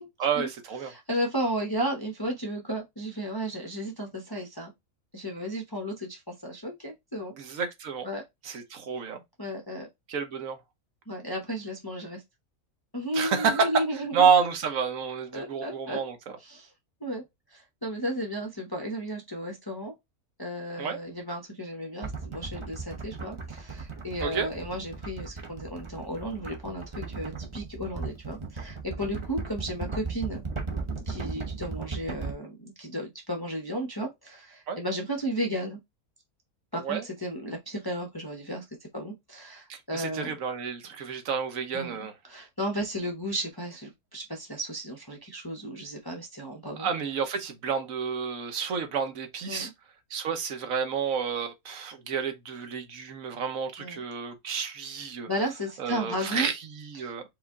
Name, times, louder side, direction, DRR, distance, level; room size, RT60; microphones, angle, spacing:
voice 1, 0.2-0.9 7.4-8.1 8.4-9.2 10.1-10.6 13.1-13.8 14.1-16.2 20.8-21.0 24.2-24.5 34.7-34.8 36.8-37.0 39.7-42.1 46.8-49.7 50.1-55.3 55.8-57.2, right 6 dB, 65° right, 1.2 m, -29 dB
voice 2, 0.8-4.7 5.1-7.3 8.0-8.2 9.4-9.9 11.1-12.2 12.9-14.3 15.3-16.0 16.4-16.7 17.0-17.2 17.5-19.9 20.4-30.4 31.1-35.8 36.7-38.6 38.9-40.4 41.7-46.9 49.5-49.7 53.8-54.0 55.3-56.5 56.9-57.1, equal, 20° left, 0.6 m, -34 dB
sound 1, 22.0-32.3, right 4 dB, 30° right, 0.6 m, -37 dB
4.8 x 2.4 x 3.5 m
omnidirectional pair, 1.6 m